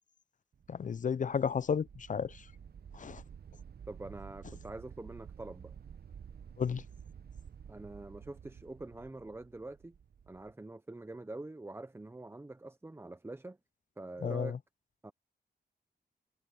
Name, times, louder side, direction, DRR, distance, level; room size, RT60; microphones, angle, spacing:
sound 1, 0.5-10.5, right 7 dB, 55° right, 0.7 m, -52 dB
voice 1, 0.7-2.4 2.9-3.2 6.6-6.8 14.2-14.5, left 6 dB, 45° left, 0.4 m, -32 dB
voice 2, 3.9-5.7 7.7-10.0 10.3-13.6 14.0-14.6 15.0-15.1, right 2 dB, 15° right, 0.5 m, -45 dB
wide cardioid pair, 90°, 19 cm